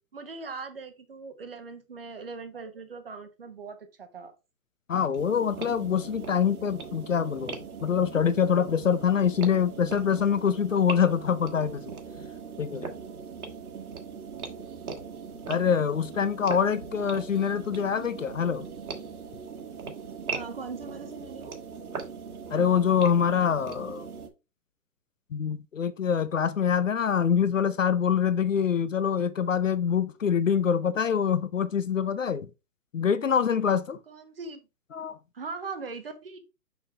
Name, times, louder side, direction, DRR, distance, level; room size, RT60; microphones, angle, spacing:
voice 1, 0.1-4.3 20.3-21.5 34.1-34.6 35.3-36.4, right 4 dB, 35° right, 1.1 m, -40 dB
voice 2, 4.9-11.9 12.6-12.9 15.5-18.7 22.5-24.0 25.3-32.5 32.9-34.0 34.9-35.2, left 7 dB, 55° left, 0.6 m, -25 dB
sound 1, 5.1-24.3, right 5 dB, 65° right, 1.7 m, -40 dB
6.0 x 5.6 x 3.2 m
hypercardioid pair, 175°, 48 cm